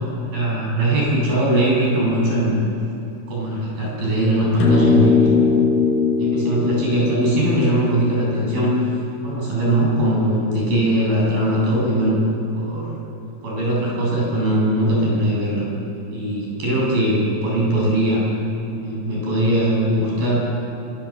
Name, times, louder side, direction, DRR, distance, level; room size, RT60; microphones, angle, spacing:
voice 1, 0.3-2.6 3.3-5.3 6.2-8.8 9.2-12.2 12.5-13.0 13.4-15.7 16.1-18.3 18.7-20.4, right 1 dB, 45° right, -4 dB, 9.3 m, -20 dB
sound 1, 4.6-9.1, left 5 dB, 75° left, 6.3 m, -20 dB
27.0 x 23.5 x 7.5 m, 2.8 s
omnidirectional pair, 5.8 m